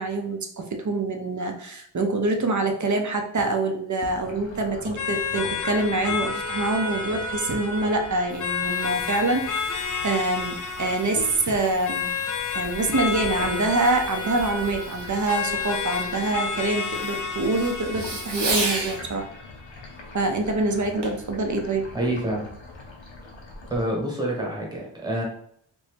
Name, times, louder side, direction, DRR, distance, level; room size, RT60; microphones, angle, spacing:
voice 1, 0.0-12.1 12.5-19.3 20.1-21.9, right 2 dB, 40° right, 4 dB, 0.5 m, -25 dB
sound 1, 4.0-23.8, left 2 dB, 80° left, 0.7 m, -42 dB
sound 2, 5.0-19.9, left 5 dB, 45° left, 0.4 m, -31 dB
Fireworks, 8.1-19.0 21.0-21.3 21.9-22.0, right 2 dB, 65° right, 0.9 m, -36 dB
voice 2, 21.9-22.4 23.7-25.2, right 1 dB, 10° right, -2 dB, 1.1 m, -27 dB
2.7 x 2.6 x 3.4 m, 0.65 s
wide cardioid pair, 95°, 45 cm